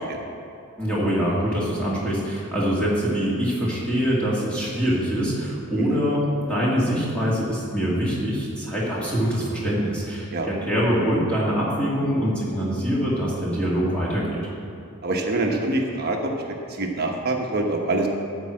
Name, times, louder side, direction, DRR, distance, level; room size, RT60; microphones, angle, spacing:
voice 1, 0.8-14.4, equal, 5° left, -7 dB, 2.3 m, -24 dB
voice 2, 15.0-16.3 16.8-18.1, right 2 dB, 45° right, 1 dB, 1.1 m, -25 dB
13.0 x 4.7 x 7.7 m, 2.6 s
head